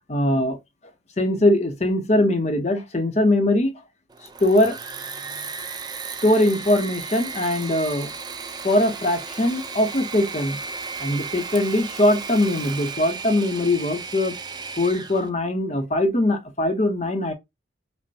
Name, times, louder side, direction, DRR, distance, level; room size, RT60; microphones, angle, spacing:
voice 1, 0.1-0.6 1.2-3.7 4.4-4.8 6.2-8.1 8.6-10.6 11.0-14.3 14.8-17.3, left 1 dB, 35° left, 0.7 m, -21 dB
Engine / Mechanisms, 4.1-15.3, right 5 dB, 20° right, 0.4 m, -35 dB
5.2 x 2.2 x 2.6 m
head